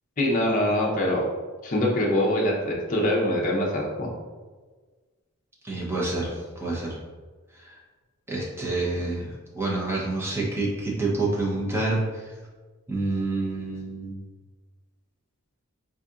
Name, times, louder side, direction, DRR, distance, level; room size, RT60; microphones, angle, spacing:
voice 1, 0.2-1.2 1.6-4.1, left 1 dB, 40° left, -3 dB, 0.6 m, -24 dB
voice 2, 5.6-7.0 7.6-7.8 8.3-12.3 12.9-14.2, right 2 dB, 10° right, -5 dB, 0.7 m, -28 dB
3.9 x 2.8 x 2.4 m, 1.4 s
head